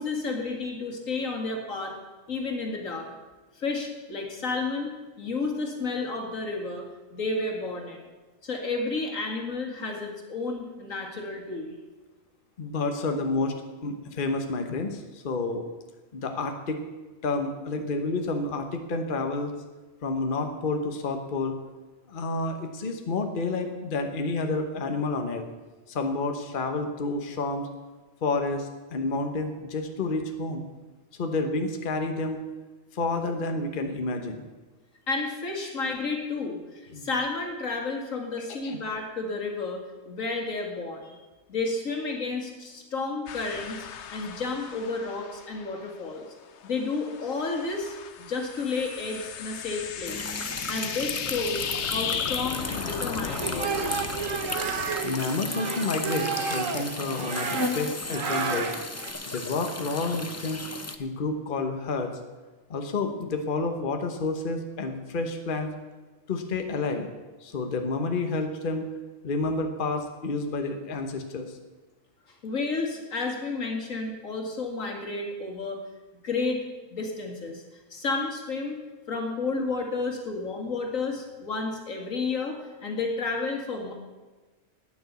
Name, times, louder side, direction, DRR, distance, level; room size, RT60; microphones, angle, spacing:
voice 1, 0.0-1.9 2.3-3.1 3.5-6.9 7.1-8.0 8.4-11.8 35.1-39.8 40.1-41.2 41.5-46.2 46.6-50.3 50.7-51.6 51.9-53.9 72.4-75.8 76.2-76.7 76.9-77.6 77.9-78.8 79.1-83.9, left 3 dB, 80° left, 2 dB, 2.5 m, -31 dB
voice 2, 12.6-13.5 13.8-15.6 16.1-16.8 17.2-19.5 20.0-21.6 22.1-25.4 25.9-27.7 28.2-30.6 31.2-32.4 32.9-34.5 36.9-37.1 38.6-38.8 55.0-58.7 59.3-60.7 61.0-62.2 62.7-65.7 66.3-67.1 67.4-68.9 69.2-71.6, left 3 dB, 45° left, 5 dB, 1.1 m, -29 dB
sound 1, 43.3-46.2 46.5-55.0, left 8 dB, 65° left, 1.0 m, -36 dB
sound 2, 50.1-61.0, left 2 dB, 20° left, 0.5 m, -35 dB
sound 3, 53.3-59.1, right 6 dB, 75° right, 1.5 m, -31 dB
10.0 x 9.6 x 8.2 m, 1.2 s
omnidirectional pair, 1.3 m